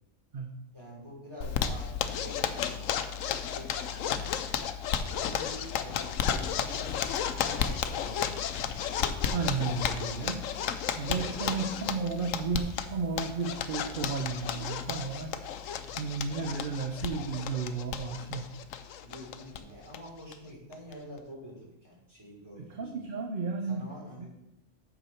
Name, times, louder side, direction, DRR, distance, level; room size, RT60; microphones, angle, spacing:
voice 1, 0.7-2.8 3.4-4.2 5.1-7.0 7.4-8.8 9.5-10.3 11.0-11.8 15.7-16.0 19.0-22.8 23.6-24.3, equal, 20° right, -6 dB, 3.3 m, -47 dB
Zipper (clothing), 1.4-19.6 19.9-20.0 20.3-20.4 20.7-21.2, left 8 dB, 80° left, 1.0 m, -33 dB
voice 2, 9.2-10.4 11.0-15.4 15.9-18.5 22.7-23.9 24.2-24.3, right 4 dB, 50° right, 4 dB, 0.8 m, -33 dB
8.1 x 6.3 x 4.4 m, 0.87 s
omnidirectional pair, 1.3 m